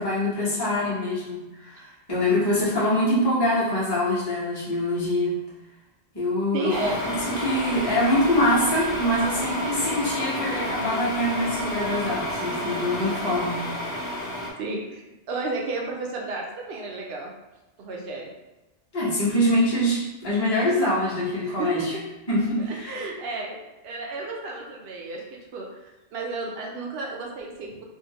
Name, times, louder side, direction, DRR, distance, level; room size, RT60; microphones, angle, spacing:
voice 1, 0.0-5.4 6.1-13.6 18.9-22.0 22.3-22.9, left 1 dB, 25° left, -9 dB, 1.0 m, -24 dB
voice 2, 6.5-7.0 13.0-13.1 14.6-15.0 15.3-17.3 17.8-18.3 21.4-21.9 22.6-23.6 23.8-27.8, right 3 dB, 70° right, -1 dB, 0.8 m, -32 dB
sound 1, 6.7-14.5, left 1 dB, 75° left, 0.9 m, -30 dB
2.7 x 2.4 x 2.8 m, 1.0 s
omnidirectional pair, 1.1 m